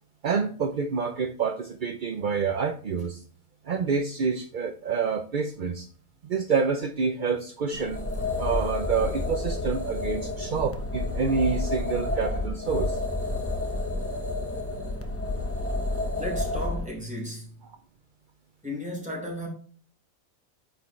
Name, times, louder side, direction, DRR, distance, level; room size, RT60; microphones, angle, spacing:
voice 1, 0.2-3.2 3.7-5.9 6.2-8.0 8.4-13.0, right 5 dB, 50° right, 0.6 m, -27 dB
sound 1, 7.7-16.9, left 2 dB, 10° left, 0.8 m, -30 dB
voice 2, 16.2-17.6 18.6-19.5, left 1 dB, 5° right, 4.0 m, -34 dB
9.4 x 6.1 x 3.2 m
omnidirectional pair, 1.5 m